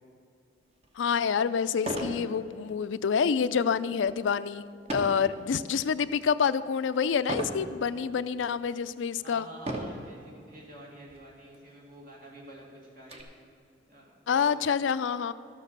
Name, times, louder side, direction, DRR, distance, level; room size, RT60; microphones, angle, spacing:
sound 1, 0.8-0.9 1.8-2.2 2.7-3.0 4.9-5.3 5.9-6.3 7.3-7.6 8.4-8.5 9.6-10.1 11.1-11.2 11.5-11.6 12.1-13.2, right 1 dB, 35° right, 1.2 m, -34 dB
voice 1, 1.0-4.6 4.9-9.5 14.3-15.3, left 6 dB, 85° left, 15 dB, 0.4 m, -27 dB
voice 2, 9.2-13.3 13.9-14.7, right 1 dB, 50° right, -2 dB, 2.2 m, -49 dB
12.5 x 7.2 x 6.7 m, 2.4 s
head